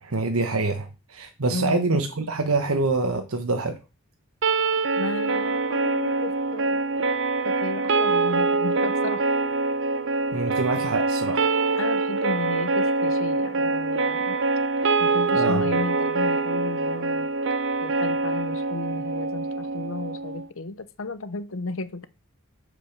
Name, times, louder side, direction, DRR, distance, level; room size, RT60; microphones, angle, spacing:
voice 1, 0.0-3.8 10.3-11.5 15.3-15.6, right 3 dB, 85° right, 1.2 m, -25 dB
voice 2, 1.5-1.9 5.0-6.8 7.4-9.3 11.8-14.4 15.0-17.3 17.8-22.1, left 3 dB, 70° left, 0.9 m, -33 dB
sound 1, 4.4-20.5, right 3 dB, 60° right, 0.7 m, -24 dB
8.7 x 5.2 x 6.6 m
head